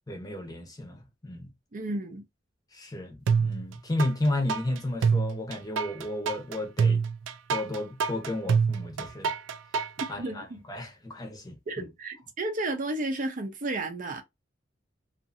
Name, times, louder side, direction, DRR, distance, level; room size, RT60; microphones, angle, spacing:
voice 1, 0.1-1.5 2.7-7.0 7.5-9.3 10.1-11.9, left 1 dB, 20° left, 0.8 m, -33 dB
voice 2, 1.7-2.2 10.2-10.6 11.7-14.2, right 2 dB, 45° right, 0.6 m, -32 dB
sound 1, 3.3-4.1 4.5-10.1, right 5 dB, 90° right, 0.3 m, -26 dB
2.6 x 2.5 x 2.5 m
head